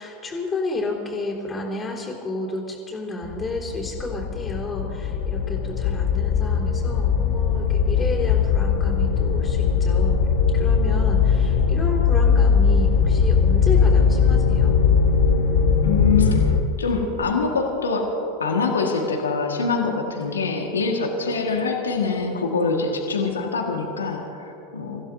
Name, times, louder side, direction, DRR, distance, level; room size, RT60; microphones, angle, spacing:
voice 1, 0.0-10.2 10.5-14.7, left 2 dB, 20° left, -3 dB, 3.6 m, -31 dB
sound 1, 3.2-16.6, left 6 dB, 60° left, 1.1 m, -20 dB
voice 2, 15.8-16.5 16.8-18.0 18.4-25.0, left 4 dB, 80° left, 1 dB, 1.7 m, -24 dB
29.5 x 15.5 x 2.8 m, 3.0 s
figure-of-eight pair, 85°, 0 cm